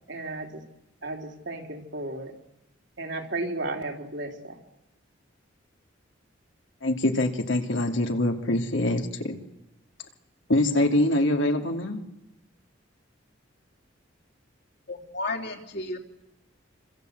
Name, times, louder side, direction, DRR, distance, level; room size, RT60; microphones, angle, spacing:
voice 1, 0.1-0.6 1.0-2.3 3.0-4.6, right 2 dB, 65° right, 2 dB, 3.3 m, -34 dB
voice 2, 6.8-9.4 10.5-12.0, left 1 dB, 75° left, 4 dB, 2.8 m, -24 dB
voice 3, 14.9-16.0, left 2 dB, 55° left, 2 dB, 3.4 m, -33 dB
27.0 x 26.0 x 8.0 m, 0.90 s
head